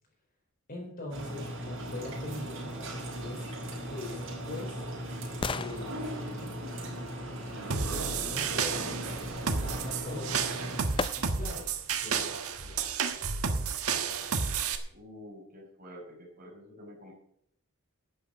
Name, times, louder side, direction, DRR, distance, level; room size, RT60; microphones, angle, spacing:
voice 1, 0.7-3.5 3.8-4.8 5.3-6.8 7.2-8.9 9.6-10.4 11.2-11.7 12.0-12.9, left 1 dB, 40° left, 0 dB, 4.3 m, -42 dB
sound 1, 1.1-10.8, right 1 dB, 60° right, 5.4 m, -38 dB
sound 2, 7.7-14.8, right 5 dB, 80° right, 1.4 m, -31 dB
sound 3, 11.0-11.7 12.2-12.3, left 4 dB, 20° left, 0.5 m, -40 dB
voice 2, 14.9-17.1, equal, 40° right, -1 dB, 5.3 m, -48 dB
12.0 x 8.0 x 7.5 m, 0.71 s
head